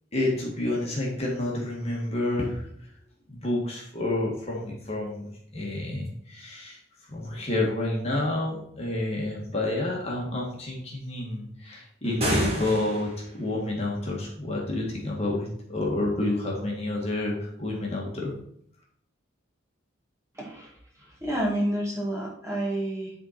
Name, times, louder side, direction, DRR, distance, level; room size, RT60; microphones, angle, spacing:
voice 1, 0.1-2.6 3.3-6.8 7.1-18.3, left 2 dB, 30° left, -2 dB, 1.6 m, -29 dB
sound 1, 12.0-13.3, equal, 30° right, 1.7 m, -28 dB
voice 2, 20.3-20.7 21.0-23.1, right 1 dB, 15° right, -4 dB, 1.9 m, -29 dB
10.5 x 3.8 x 4.3 m, 0.67 s
head